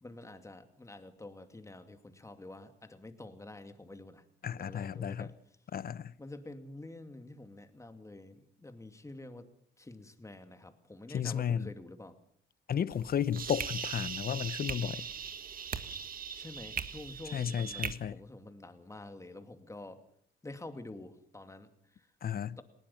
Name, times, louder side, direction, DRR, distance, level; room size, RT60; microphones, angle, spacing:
voice 1, 0.0-4.2 4.6-5.4 6.2-9.5 9.8-12.2 16.3-20.0 20.4-22.1 22.6-22.7, left 2 dB, 15° left, 2.5 m, -48 dB
voice 2, 4.4-5.3 5.7-6.1 11.1-11.7 12.7-15.1 17.3-18.2 22.2-22.6, left 8 dB, 50° left, 0.9 m, -33 dB
sound 1, 12.9-17.9, right 7 dB, 45° right, 1.7 m, -39 dB
20.0 x 18.5 x 7.3 m
cardioid pair, 90°, 20 cm